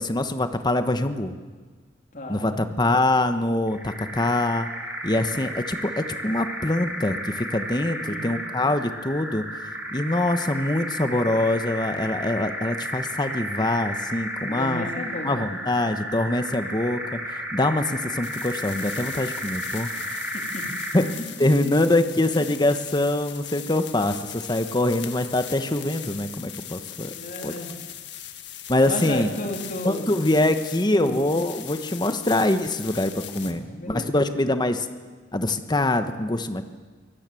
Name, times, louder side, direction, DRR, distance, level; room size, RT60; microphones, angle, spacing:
voice 1, 0.0-1.3 2.3-4.7 5.0-9.5 9.9-14.9 15.2-19.9 20.9-21.0 21.4-27.1 27.4-27.5 28.7-29.3 29.8-34.9 35.3-36.6, left 1 dB, 25° left, 9 dB, 1.2 m, -24 dB
voice 2, 2.1-2.6 8.0-8.3 14.4-15.5 19.9-20.0 20.3-20.7 27.0-27.7 28.9-30.2 30.9-31.2 33.4-34.2, left 1 dB, 45° left, 2 dB, 3.4 m, -33 dB
sound 1, 3.7-21.1, equal, 10° right, 4.8 m, -33 dB
sound 2, 18.2-33.5, left 11 dB, 70° left, 1.7 m, -39 dB
24.0 x 18.0 x 7.7 m, 1.4 s
head